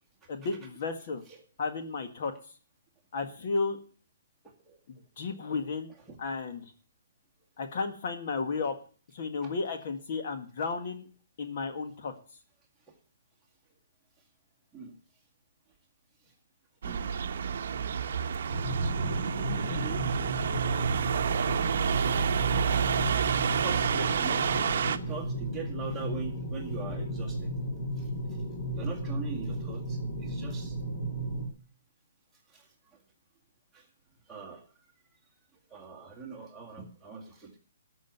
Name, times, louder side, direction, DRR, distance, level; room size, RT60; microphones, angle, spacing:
voice 1, 0.3-1.2 1.6-2.3 3.1-3.8 4.9-5.9 6.2-6.7 7.6-8.7 9.1-11.1 11.4-12.1, left 4 dB, 40° left, 6 dB, 1.6 m, -33 dB
voice 2, 4.4-4.8 5.4-5.5 6.1-6.2 8.5-8.6 9.4-9.5 12.9-13.0 14.7-14.9 16.8-17.1 18.3-18.5 19.5-20.1 23.6-24.5 24.9-27.5 28.0-28.4 28.7-30.8 32.5-33.0 33.7-33.9 34.3-34.6 35.7-37.6, right 5 dB, 5° right, -4 dB, 2.1 m, -42 dB
sound 1, 16.8-25.0, right 7 dB, 50° right, 0.9 m, -29 dB
sound 2, 18.5-31.5, right 1 dB, 25° left, 3.0 m, -34 dB
13.0 x 6.3 x 9.4 m, 0.42 s
hypercardioid pair, 170°, 0 cm